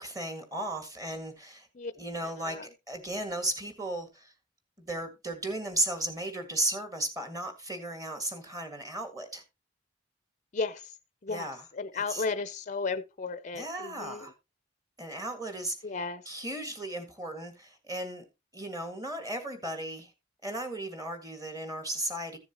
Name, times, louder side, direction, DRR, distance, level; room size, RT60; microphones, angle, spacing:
voice 1, 0.0-1.7 1.9-2.6 2.9-4.3 4.8-9.4 11.3-11.6 12.1-12.2 13.5-14.3 15.0-15.8 16.3-18.2 18.5-20.1 20.4-22.4, right 1 dB, 20° right, 1.9 m, -35 dB
voice 2, 2.2-2.7 10.5-10.9 11.2-14.3 15.8-16.2, left 4 dB, 40° left, 0.5 m, -34 dB
14.5 x 7.1 x 2.9 m
head